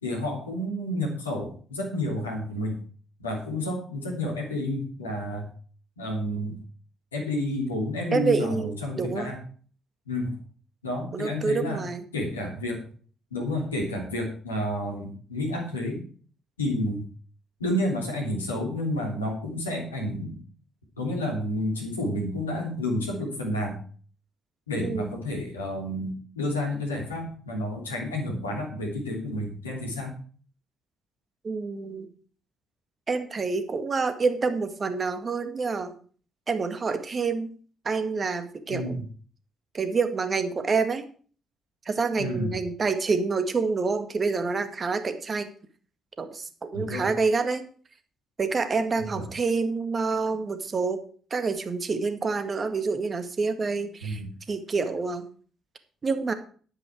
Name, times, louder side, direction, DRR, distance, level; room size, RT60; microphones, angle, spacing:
voice 1, 0.0-2.8 3.2-5.5 6.0-6.6 7.1-9.4 10.1-10.4 10.8-11.8 12.1-12.8 13.3-16.1 16.6-17.1 17.6-20.4 21.0-23.8 24.7-30.2 38.7-39.0 42.2-42.6 46.7-47.1 49.0-49.3 54.0-54.3, left 1 dB, 85° left, 0 dB, 3.1 m, -30 dB
voice 2, 8.1-8.7 9.0-9.3 11.1-12.0 24.8-25.2 31.4-32.1 33.1-35.9 36.5-37.5 37.9-39.0 39.7-41.0 41.9-45.5 46.2-47.6 48.4-51.0 51.3-54.2 54.5-55.3 56.0-56.3, right 4 dB, 40° right, 9 dB, 1.9 m, -27 dB
11.0 x 10.0 x 4.6 m, 0.42 s
figure-of-eight pair, 45°, 0 cm